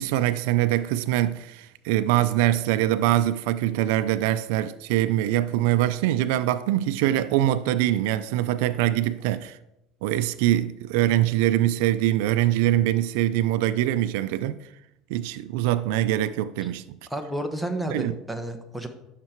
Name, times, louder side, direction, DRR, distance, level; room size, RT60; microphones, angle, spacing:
voice 1, 0.0-9.6 10.0-14.6 15.1-17.0 17.9-18.1, right 13 dB, 80° right, 0.4 m, -23 dB
voice 2, 17.1-18.9, right 1 dB, 5° right, 1.3 m, -31 dB
12.5 x 6.6 x 4.5 m
supercardioid pair, 120°, 0 cm